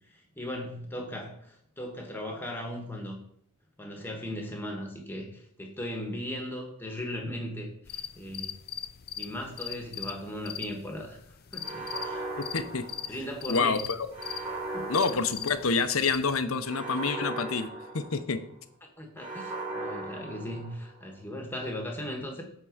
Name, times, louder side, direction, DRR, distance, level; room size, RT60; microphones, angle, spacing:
voice 1, 0.1-3.2 3.8-8.5 9.2-11.2 11.5-12.3 13.0-13.8 14.7-14.9 19.0-22.4, left 1 dB, 10° left, 1 dB, 1.3 m, -37 dB
sound 1, 7.8-16.4, left 10 dB, 45° left, 0.5 m, -41 dB
sound 2, 11.6-13.5 14.1-15.9 16.6-18.5 19.2-21.0, right 2 dB, 35° right, 3.1 m, -38 dB
voice 2, 12.4-12.9 13.5-14.1 14.9-17.7 17.9-18.4, left 4 dB, 75° left, 10 dB, 0.8 m, -27 dB
8.9 x 3.7 x 6.4 m, 0.69 s
head